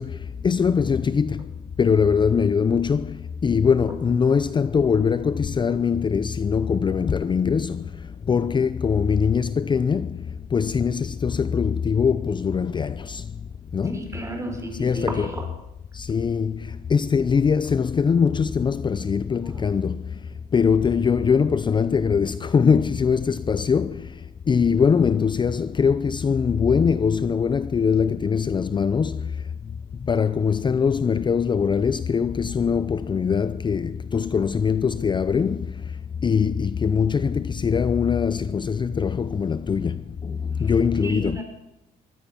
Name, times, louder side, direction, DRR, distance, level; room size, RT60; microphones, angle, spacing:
voice 1, 0.0-1.5 1.8-13.3 13.7-14.1 14.7-15.4 15.9-20.2 20.5-29.4 30.0-36.0 36.2-41.4, left 6 dB, 25° left, 0.6 m, -22 dB
voice 2, 13.9-15.5 19.4-19.6 41.0-41.4, right 1 dB, 15° right, 5.6 m, -32 dB
23.5 x 15.5 x 7.1 m
cardioid pair, 110°, 17 cm